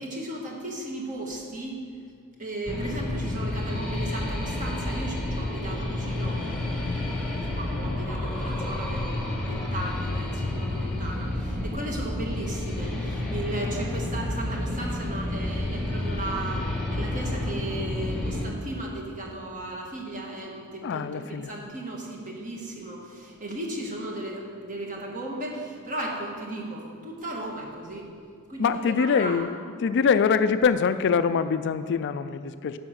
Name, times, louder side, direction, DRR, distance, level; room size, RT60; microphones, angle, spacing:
voice 1, 0.0-1.8 2.4-6.4 7.4-9.1 9.4-28.0 28.5-29.4, right 1 dB, 35° right, 0 dB, 1.5 m, -36 dB
sound 1, 2.7-18.5, left 1 dB, 5° left, 1.3 m, -30 dB
voice 2, 20.8-21.5 28.6-29.5 29.8-32.8, left 6 dB, 55° left, 11 dB, 0.4 m, -24 dB
9.6 x 6.3 x 6.3 m, 2.2 s
head